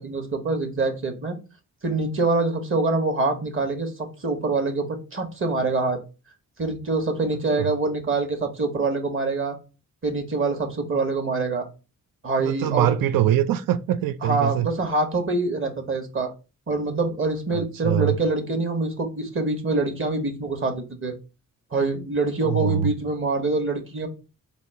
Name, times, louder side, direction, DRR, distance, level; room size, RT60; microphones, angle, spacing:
voice 1, 0.0-1.4 1.8-6.0 6.6-9.6 10.0-11.7 12.2-13.0 14.2-16.3 16.7-21.1 21.7-24.1, right 3 dB, 35° right, 1.1 m, -25 dB
voice 2, 12.4-14.7 17.8-18.2 22.4-22.9, right 12 dB, 80° right, 0.5 m, -23 dB
4.1 x 2.0 x 4.3 m
cardioid pair, 70°, 34 cm